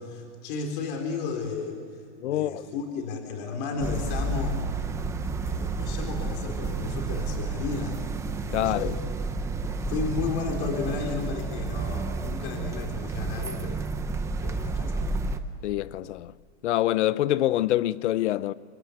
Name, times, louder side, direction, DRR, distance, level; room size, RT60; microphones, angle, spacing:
voice 1, 0.0-1.8 2.3-4.6 5.5-8.0 8.5-9.0 9.9-13.9 14.4-15.1, left 5 dB, 45° left, 4.1 m, -33 dB
voice 2, 2.2-2.6 8.5-8.9 9.7-9.8 15.6-16.3 16.6-18.5, left 14 dB, 75° left, 0.8 m, -25 dB
sound 1, 3.8-15.4, right 3 dB, 10° right, 0.8 m, -31 dB
29.0 x 24.0 x 8.0 m
supercardioid pair, 160°, 35 cm